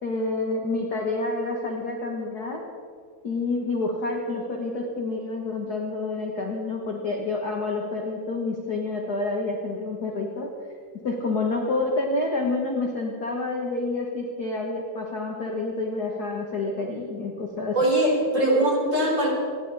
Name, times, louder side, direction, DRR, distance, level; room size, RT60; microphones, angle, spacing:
voice 1, 0.0-2.6 3.2-10.5 11.0-17.7, left 3 dB, 40° left, 0 dB, 1.6 m, -28 dB
voice 2, 17.7-19.3, right 1 dB, 25° right, -4 dB, 5.1 m, -21 dB
29.5 x 11.0 x 4.2 m, 2.2 s
omnidirectional pair, 3.4 m